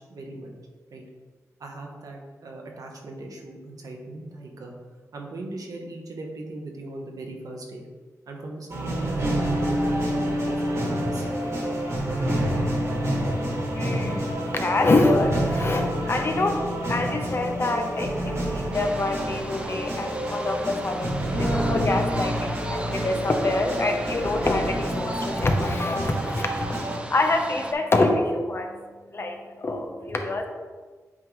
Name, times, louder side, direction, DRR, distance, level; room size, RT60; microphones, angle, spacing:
voice 1, 0.1-0.5 0.9-1.0 1.6-4.7 5.1-7.8 8.3-11.5, right 2 dB, 80° right, 1 dB, 1.0 m, -39 dB
sound 1, 8.7-27.0, equal, 50° right, 1.4 m, -28 dB
voice 2, 13.7-14.3 14.6-26.7 27.1-28.8 29.1-30.5, left 2 dB, 40° left, 4 dB, 0.7 m, -25 dB
sound 2, 18.7-27.7, right 1 dB, 20° right, 0.6 m, -38 dB
8.4 x 3.7 x 3.1 m, 1.4 s
wide cardioid pair, 95°, 6 cm